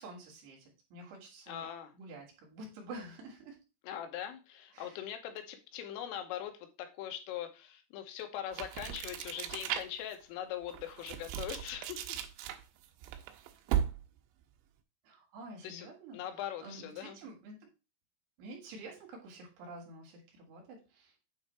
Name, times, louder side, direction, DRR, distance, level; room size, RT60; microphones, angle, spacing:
voice 1, 0.0-1.7 1.9-3.6 4.7-5.0 15.0-16.2 16.6-17.7 18.4-21.1, right 2 dB, 65° right, -1 dB, 3.6 m, -49 dB
voice 2, 1.5-1.9 3.9-12.2 15.6-15.9 16.1-17.2, left 10 dB, 90° left, 6 dB, 3.6 m, -41 dB
sound 1, 8.5-10.1 10.6-14.2, right 10 dB, 80° right, 2.9 m, -37 dB
8.6 x 3.4 x 4.3 m, 0.30 s
omnidirectional pair, 5.7 m